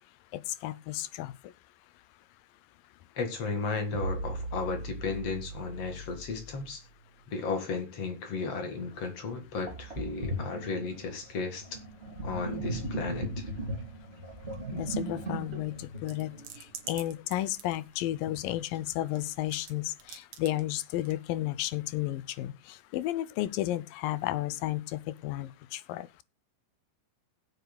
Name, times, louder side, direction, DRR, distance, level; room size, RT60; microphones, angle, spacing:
voice 1, 0.3-1.3 14.7-16.3 16.9-26.1, left 15 dB, 85° left, 2.4 m, -33 dB
voice 2, 3.2-6.8 7.3-11.7 12.2-13.5, left 4 dB, 50° left, 2.8 m, -34 dB
sound 1, 3.9-7.3, right 2 dB, 80° right, 1.0 m, -39 dB
Sink (filling or washing), 9.0-9.1 9.7-17.0, right 1 dB, 25° right, 1.5 m, -37 dB
sound 2, 16.1-18.4 18.8-19.7 20.0-20.6 21.0-21.1, right 9 dB, 60° right, 1.9 m, -44 dB
20.5 x 8.0 x 2.3 m
omnidirectional pair, 3.9 m